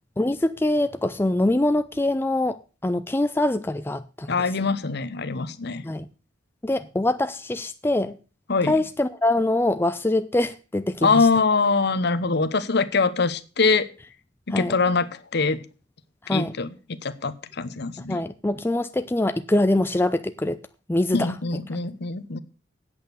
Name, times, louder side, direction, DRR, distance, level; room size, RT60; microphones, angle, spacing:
voice 1, 0.2-4.3 5.8-6.1 6.6-8.2 8.7-11.3 14.5-14.8 16.2-16.5 18.1-20.6 20.9-21.3, left 1 dB, 10° left, 0.4 m, -24 dB
voice 2, 4.3-5.8 8.5-8.7 11.0-13.9 14.5-15.6 16.3-18.2 21.1-22.4, left 4 dB, 60° left, 0.9 m, -23 dB
8.8 x 8.1 x 6.7 m
head